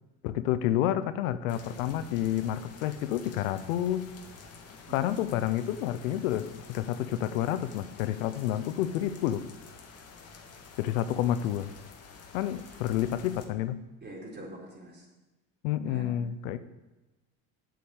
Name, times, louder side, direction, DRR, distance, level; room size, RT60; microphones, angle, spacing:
voice 1, 0.2-4.1 4.9-9.4 10.8-11.7 12.3-13.8 15.6-16.6, left 12 dB, 85° left, 12 dB, 0.8 m, -29 dB
sound 1, 1.5-13.5, left 4 dB, 40° left, 1.9 m, -49 dB
voice 2, 4.9-5.2 14.0-15.1 15.8-16.6, right 1 dB, 25° right, -2 dB, 4.0 m, -45 dB
8.0 x 6.6 x 8.3 m, 1.1 s
supercardioid pair, 95°, 39 cm